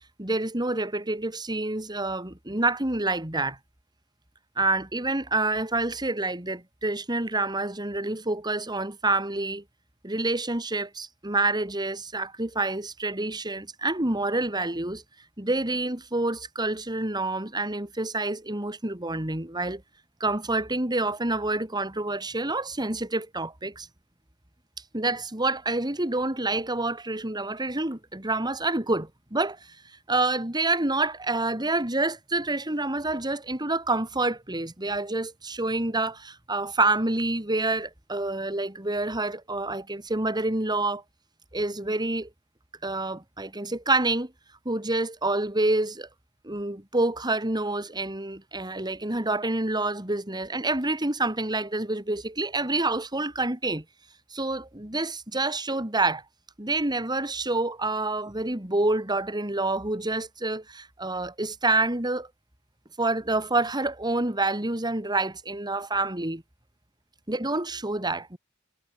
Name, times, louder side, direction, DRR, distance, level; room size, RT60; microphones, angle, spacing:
voice 1, 0.2-3.6 4.6-9.6 10.0-15.0 15.4-19.8 20.2-23.9 24.9-29.7 30.1-41.0 41.5-42.3 42.8-44.3 44.6-46.1 46.4-53.8 54.3-56.2 56.6-62.3 63.0-66.4 67.3-68.4, right 2 dB, 20° right, 3.1 m, -27 dB
head